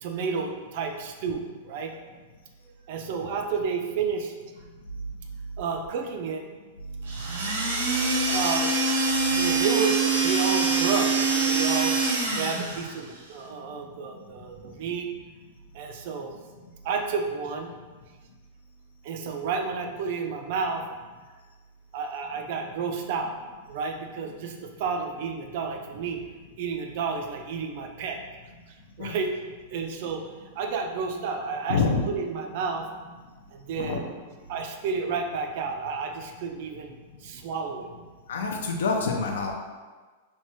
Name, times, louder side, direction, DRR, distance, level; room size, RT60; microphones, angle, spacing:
voice 1, 0.0-2.0 2.9-4.3 5.6-6.4 8.2-8.7 9.3-15.1 15.7-16.4 16.8-17.7 19.0-20.8 21.9-23.3 23.7-26.2 26.6-28.2 28.7-29.3 29.7-30.2 30.5-31.8 32.1-32.9 33.5-34.0 34.5-37.9, right 5 dB, 45° right, 4 dB, 0.3 m, -31 dB
sound 1, 7.1-12.9, right 3 dB, 85° right, 0.6 m, -24 dB
voice 2, 31.7-32.0 33.7-34.0 38.3-39.5, left 4 dB, 85° left, 2 dB, 0.5 m, -26 dB
3.0 x 2.2 x 3.0 m, 1.4 s
supercardioid pair, 170°, 0 cm